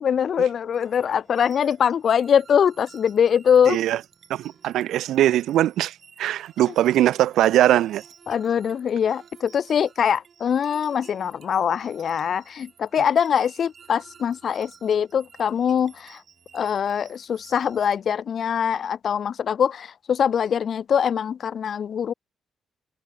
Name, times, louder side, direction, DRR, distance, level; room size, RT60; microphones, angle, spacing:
voice 1, 0.0-3.8 8.3-16.2 16.5-22.1, left 8 dB, 55° left, 0.6 m, -23 dB
sound 1, 0.7-18.0, right 7 dB, 50° right, 4.5 m, -52 dB
voice 2, 3.7-4.0 4.3-8.0, right 13 dB, 80° right, 0.5 m, -21 dB
cardioid pair, 90°, 0 cm